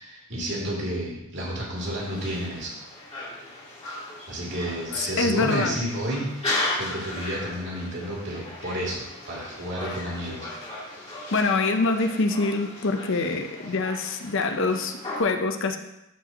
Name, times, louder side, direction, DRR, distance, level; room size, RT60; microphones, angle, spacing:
voice 1, 0.0-2.7 4.3-10.5, right 1 dB, 60° right, -5 dB, 2.6 m, -31 dB
sound 1, 1.8-15.2, left 2 dB, 25° left, 2.6 m, -36 dB
voice 2, 5.2-5.8 11.3-15.8, left 3 dB, 60° left, 6 dB, 0.7 m, -25 dB
13.5 x 5.1 x 3.0 m, 0.87 s
head